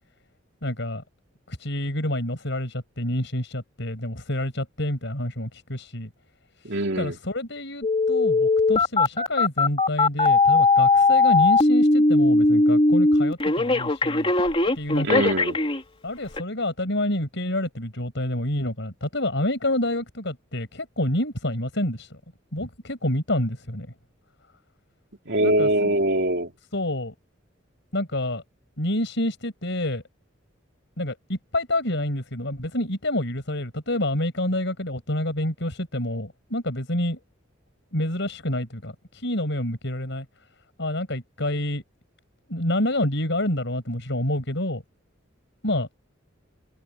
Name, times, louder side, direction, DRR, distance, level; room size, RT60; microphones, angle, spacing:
voice 1, 0.6-1.0 1.5-6.1 7.0-14.3 14.8-15.3 16.0-22.2 22.5-23.9 25.4-25.9 26.7-27.1 27.9-28.4 28.8-30.0 31.0-37.2 37.9-38.9 39.2-40.3 40.8-41.8 42.5-44.8 45.6-45.9, left 1 dB, 65° left, 7.2 m, -28 dB
voice 2, 6.6-7.2 15.0-15.6 25.2-26.5, right 1 dB, 65° right, 3.4 m, -23 dB
Telephone, 7.8-15.8 16.4-16.5, left 2 dB, 30° left, 3.1 m, -19 dB
head